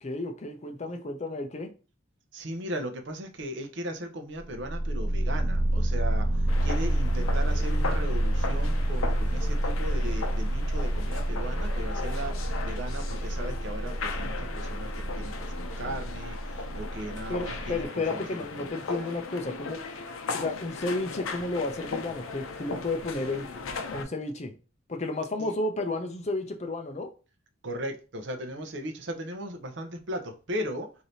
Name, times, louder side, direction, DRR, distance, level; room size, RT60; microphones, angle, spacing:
voice 1, 0.0-1.7 17.3-19.8 20.3-23.5 23.9-24.5 24.9-27.1, left 2 dB, 30° left, 0.5 m, -32 dB
voice 2, 2.3-18.3 18.5-18.7 25.4-25.5 27.6-30.9, equal, 55° right, 0.7 m, -37 dB
sound 1, 4.4-17.8, right 1 dB, 80° right, 1.0 m, -28 dB
sound 2, 6.5-24.0, left 4 dB, 80° left, 0.6 m, -38 dB
3.2 x 2.7 x 4.0 m
head